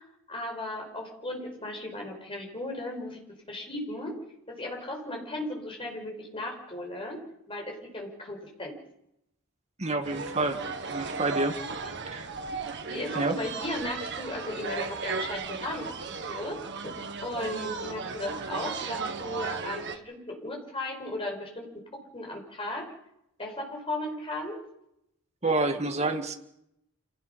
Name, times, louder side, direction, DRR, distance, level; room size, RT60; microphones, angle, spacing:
voice 1, 0.0-3.2 3.5-4.2 4.5-7.2 7.5-8.8 11.8-11.9 12.8-22.9 23.4-24.6, left 1 dB, 25° left, 1 dB, 5.6 m, -36 dB
voice 2, 9.8-10.6 10.9-11.6 12.1-12.3 13.1-13.4 25.4-26.4, right 2 dB, 30° right, 6 dB, 1.8 m, -28 dB
sound 1, 10.0-20.0, right 4 dB, 55° right, 1.5 m, -35 dB
27.5 x 18.0 x 5.8 m, 0.80 s
head